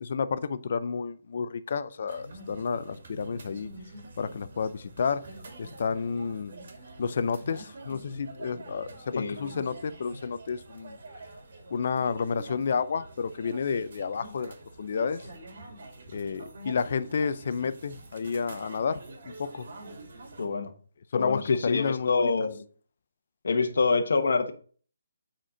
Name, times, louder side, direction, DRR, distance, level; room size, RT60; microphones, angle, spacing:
voice 1, 0.0-3.7 4.2-5.2 5.6-6.5 7.0-11.0 11.7-15.2 16.1-19.0 19.4-19.7 21.1-22.3, left 5 dB, 50° left, 0.5 m, -30 dB
sound 1, 2.1-20.5, right 2 dB, 55° right, 2.3 m, -46 dB
voice 2, 9.1-9.5 20.4-20.7 21.1-22.6 23.4-24.5, left 4 dB, 70° left, 1.1 m, -26 dB
7.7 x 4.4 x 4.9 m
hypercardioid pair, 165°, 0 cm